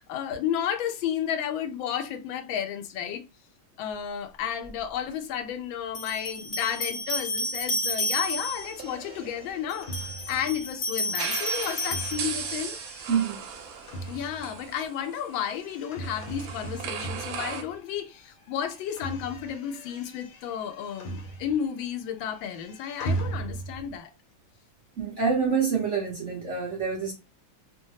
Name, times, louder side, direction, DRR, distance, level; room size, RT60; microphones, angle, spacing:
voice 1, 0.0-3.2 3.8-12.8 14.1-24.1, left 9 dB, 85° left, 1.3 m, -32 dB
sound 1, 4.7-4.8 5.9-8.8 9.7-12.8, left 1 dB, 40° left, 0.5 m, -31 dB
sound 2, 8.2-10.3 11.1-17.6, right 7 dB, 80° right, 1.4 m, -38 dB
sound 3, 8.8-18.1 18.4-21.8 22.1-24.0, right 2 dB, 70° left, 1.2 m, -39 dB
voice 2, 13.1-13.4 25.0-27.1, right 6 dB, 50° right, 0.9 m, -26 dB
3.1 x 2.1 x 2.7 m
omnidirectional pair, 2.1 m